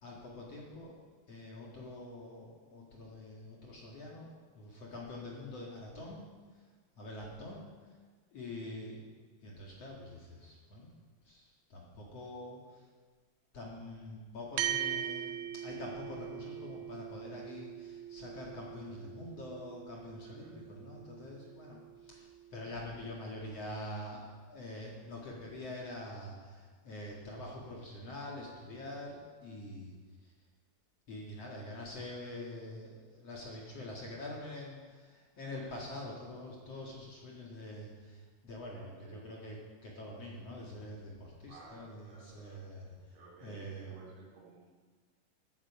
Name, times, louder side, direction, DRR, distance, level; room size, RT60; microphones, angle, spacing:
voice 1, 0.0-0.9 1.3-6.7 7.0-8.0 8.3-9.0 9.4-10.9 11.2-12.9 13.5-30.3 31.1-44.0, left 1 dB, 50° left, -3 dB, 1.9 m, -45 dB
sound 1, 14.6-23.2, right 11 dB, 80° right, 2.7 m, -41 dB
voice 2, 20.2-20.6 22.6-23.5 35.4-36.0 38.7-39.3 41.5-42.7 43.1-44.8, right 4 dB, 65° right, -4 dB, 5.4 m, -56 dB
14.5 x 13.5 x 4.9 m, 1.5 s
omnidirectional pair, 5.9 m